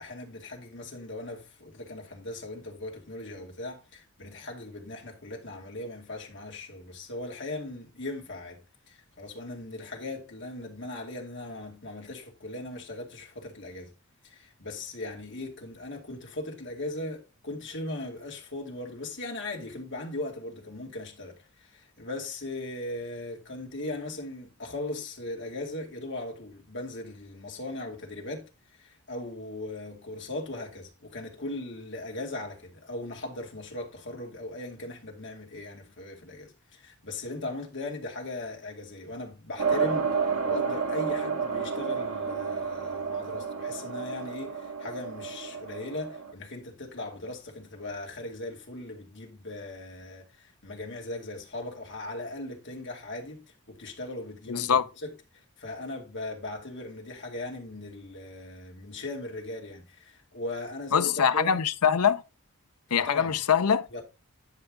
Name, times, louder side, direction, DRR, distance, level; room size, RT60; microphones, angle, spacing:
voice 1, 0.0-13.9 14.2-28.5 28.8-55.1 55.6-61.6 63.0-63.4 63.9-64.0, left 2 dB, 55° left, 2.4 m, -38 dB
sound 1, 39.6-46.3, right 5 dB, 80° right, 1.6 m, -31 dB
voice 2, 54.5-54.8 60.9-62.2 62.9-63.9, left 7 dB, 85° left, 0.7 m, -23 dB
10.5 x 5.7 x 3.7 m
head